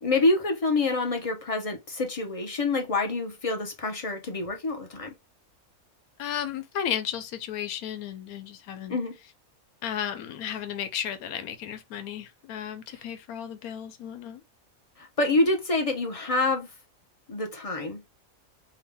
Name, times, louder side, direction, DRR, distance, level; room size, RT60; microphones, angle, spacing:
voice 1, 0.0-5.1 8.9-9.1 15.2-16.7 17.3-18.0, left 2 dB, 40° left, 0.5 m, -26 dB
voice 2, 6.2-9.0 9.8-14.4, left 9 dB, 90° left, 1.1 m, -34 dB
3.7 x 2.2 x 3.4 m
omnidirectional pair, 1.5 m